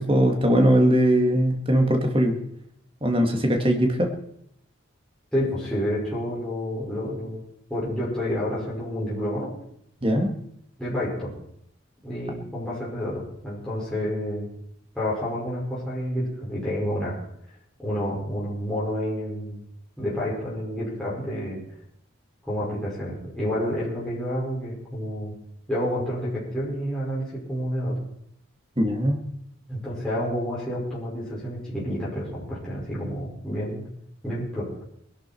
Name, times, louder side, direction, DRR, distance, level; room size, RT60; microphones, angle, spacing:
voice 1, 0.0-2.4 3.0-4.1 10.0-10.4 28.8-29.2, right 1 dB, 25° right, 3 dB, 2.0 m, -20 dB
voice 2, 5.3-7.4 7.7-9.5 10.8-11.3 12.0-14.5 14.9-17.2 17.8-19.6 20.0-21.6 22.4-25.3 25.7-28.0 29.7-33.8 34.2-34.7, equal, 5° left, -9 dB, 5.7 m, -29 dB
21.0 x 11.5 x 4.6 m, 0.73 s
head